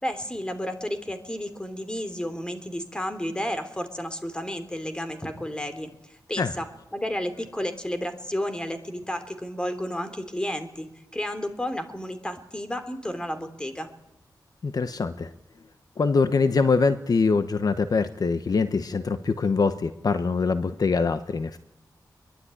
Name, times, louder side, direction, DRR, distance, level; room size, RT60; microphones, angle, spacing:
voice 1, 0.0-6.7 6.9-10.9 11.1-13.9, equal, 10° left, 9 dB, 3.3 m, -32 dB
voice 2, 14.6-15.3 16.0-21.6, left 4 dB, 60° left, 10 dB, 1.1 m, -23 dB
24.5 x 22.5 x 9.9 m, 0.81 s
wide cardioid pair, 120°, 7 cm